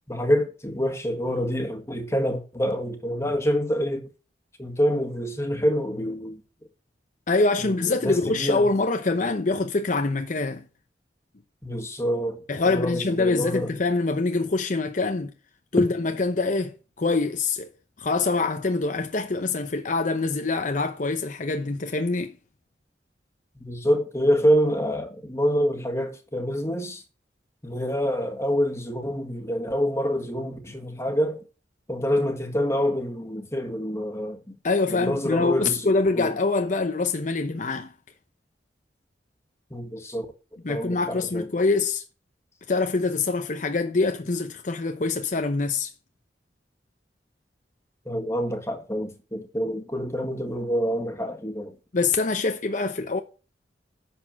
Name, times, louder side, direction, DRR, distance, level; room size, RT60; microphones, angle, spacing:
voice 1, 0.1-4.0 4.6-6.4 7.6-8.7 11.6-12.4 12.6-13.7 23.6-27.0 27.6-31.4 31.9-34.4 34.9-35.9 36.2-36.4 39.7-40.3 40.7-41.5 48.1-51.8, equal, 15° left, 1.7 m, -26 dB
voice 2, 7.3-10.7 12.5-15.3 15.7-17.7 18.0-22.4 34.6-37.9 40.6-42.0 42.7-45.9 51.9-53.2, left 3 dB, 45° left, 0.7 m, -25 dB
11.0 x 4.4 x 7.4 m
head